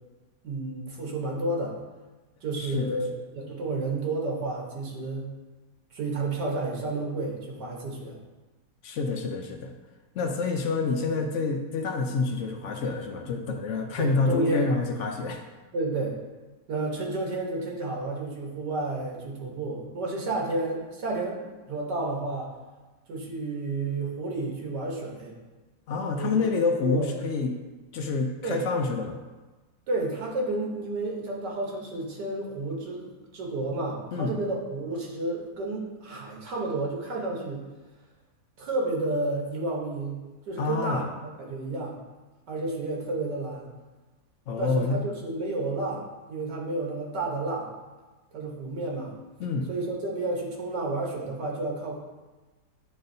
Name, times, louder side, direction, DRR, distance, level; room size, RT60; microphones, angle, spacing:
voice 1, 0.4-1.8 2.4-5.3 5.9-8.2 14.0-14.7 15.7-16.2 16.7-22.5 23.1-25.3 26.2-26.3 26.8-27.2 28.4-28.6 29.9-37.6 38.6-40.2 40.5-41.0 41.4-42.0 42.5-43.7 44.6-47.7 48.3-49.1 49.7-52.0, right 2 dB, 80° right, -1 dB, 1.7 m, -31 dB
voice 2, 2.6-3.0 8.8-9.7 10.1-15.4 25.9-27.5 27.9-29.2 34.1-34.4 40.6-41.1 44.5-45.0 49.4-49.7, left 4 dB, 75° left, 4 dB, 0.6 m, -27 dB
9.3 x 3.9 x 2.6 m, 1.2 s
omnidirectional pair, 1.8 m